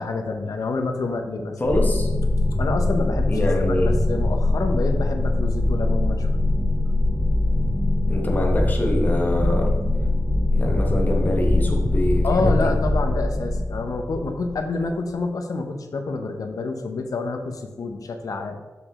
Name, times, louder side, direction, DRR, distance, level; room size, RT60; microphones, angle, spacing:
voice 1, 0.0-1.5 2.6-3.4 3.7-6.3 12.2-18.6, left 3 dB, 70° left, 5 dB, 0.7 m, -27 dB
voice 2, 1.6-2.1 3.3-3.9 8.1-9.7 10.5-12.7, left 1 dB, 30° left, 0 dB, 1.2 m, -24 dB
sound 1, 1.6-14.9, left 2 dB, 15° right, 1.5 m, -22 dB
6.8 x 5.1 x 3.6 m, 1.3 s
wide cardioid pair, 145°, 6 cm